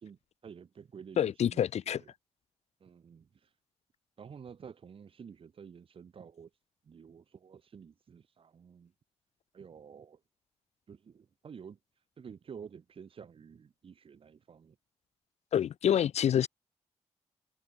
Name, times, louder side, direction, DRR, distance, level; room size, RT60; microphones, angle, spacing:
voice 1, 0.0-2.1 2.8-3.5 4.2-6.5 6.8-8.9 9.5-10.2 10.9-11.8 12.2-14.8, right 7 dB, 55° right, 1.8 m, -50 dB
voice 2, 1.2-2.0 15.5-16.5, left 9 dB, 75° left, 0.5 m, -27 dB
wide cardioid pair, 145°, 11 cm